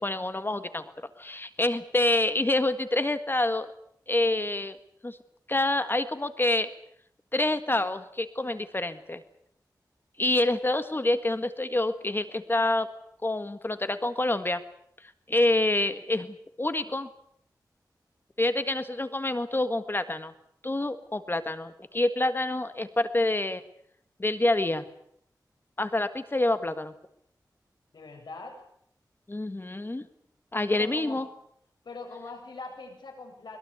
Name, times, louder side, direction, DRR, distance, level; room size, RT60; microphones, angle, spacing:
voice 1, 0.0-3.7 4.1-4.8 5.0-5.2 5.5-6.7 7.3-9.2 10.2-12.9 13.2-14.6 15.3-17.1 18.4-20.3 20.6-23.6 24.2-24.9 25.8-26.9 29.3-30.1 30.5-31.3, left 2 dB, 30° left, 11 dB, 1.6 m, -27 dB
voice 2, 27.9-28.6 30.7-31.2 31.8-33.6, left 3 dB, 85° left, 3 dB, 7.4 m, -42 dB
22.5 x 21.5 x 8.3 m, 0.70 s
wide cardioid pair, 70°, 7 cm